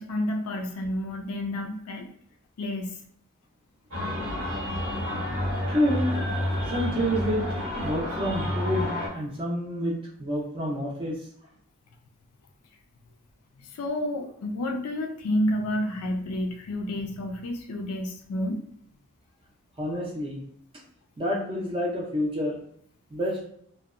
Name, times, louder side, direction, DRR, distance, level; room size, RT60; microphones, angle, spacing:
voice 1, 0.0-2.1 2.6-3.0 13.6-18.6, left 1 dB, 80° left, 3 dB, 0.4 m, -30 dB
sound 1, 3.9-9.1, left 1 dB, 75° right, 0.8 m, -29 dB
voice 2, 5.7-6.1 6.7-7.4 7.7-11.2 19.8-20.4 21.2-22.6 23.1-23.4, equal, 25° right, -3 dB, 0.4 m, -28 dB
2.7 x 2.1 x 2.4 m, 0.65 s
head